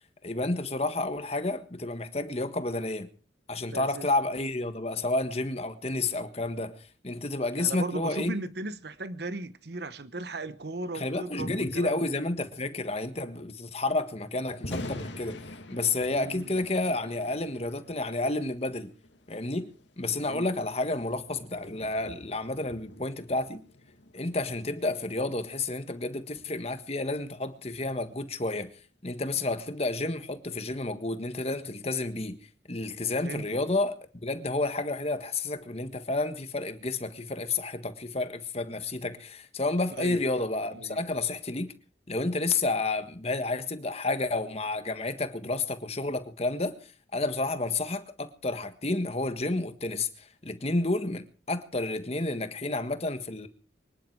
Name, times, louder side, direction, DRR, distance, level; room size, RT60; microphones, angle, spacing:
voice 1, 0.2-3.1 3.5-8.3 10.9-15.4 15.7-18.9 19.3-19.7 20.0-23.6 24.1-28.7 29.0-32.4 32.7-41.7 42.1-46.8 47.1-53.5, left 2 dB, 35° left, 1.5 m, -30 dB
voice 2, 3.7-4.1 7.6-12.1 16.1-16.6 20.3-20.6 33.2-33.5 40.0-40.2 40.7-41.0, right 2 dB, 60° right, 1.0 m, -37 dB
Thunder, 14.5-28.6, left 1 dB, 80° left, 2.3 m, -46 dB
24.5 x 10.5 x 4.7 m
head